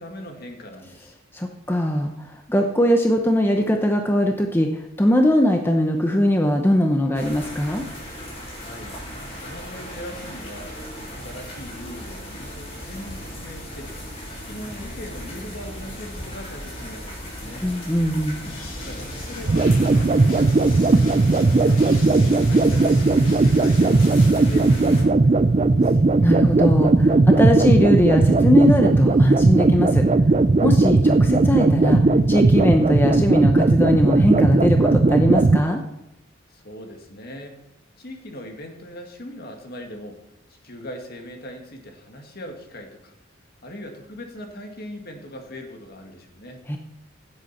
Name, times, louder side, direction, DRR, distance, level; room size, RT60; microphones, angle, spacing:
voice 1, 0.0-1.1 8.6-9.0 9.4-10.7 11.1-17.7 18.8-21.8 22.2-26.0 36.5-37.6 38.0-43.1 43.6-46.6, equal, 50° left, 3 dB, 2.0 m, -40 dB
voice 2, 1.3-7.9 17.6-18.4 26.2-30.0 30.6-35.8 46.7-46.8, left 1 dB, 10° left, 4 dB, 0.7 m, -20 dB
sound 1, 7.1-25.0, equal, 30° left, 3.4 m, -36 dB
sound 2, 18.4-24.4, left 2 dB, 80° left, 3.5 m, -40 dB
sound 3, 19.5-35.6, right 3 dB, 30° right, 0.4 m, -17 dB
16.0 x 8.0 x 4.3 m, 0.90 s
head